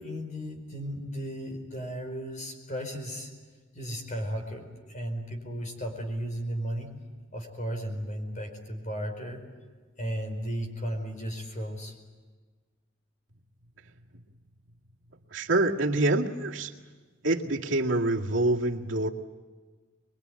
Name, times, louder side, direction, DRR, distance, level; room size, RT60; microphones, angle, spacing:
voice 1, 0.0-3.3 3.7-6.9 7.3-9.4 10.0-11.9, equal, 40° left, 4 dB, 4.8 m, -35 dB
voice 2, 15.3-16.7 17.2-19.1, right 2 dB, 80° right, -2 dB, 2.0 m, -26 dB
24.0 x 22.5 x 9.4 m, 1.4 s
head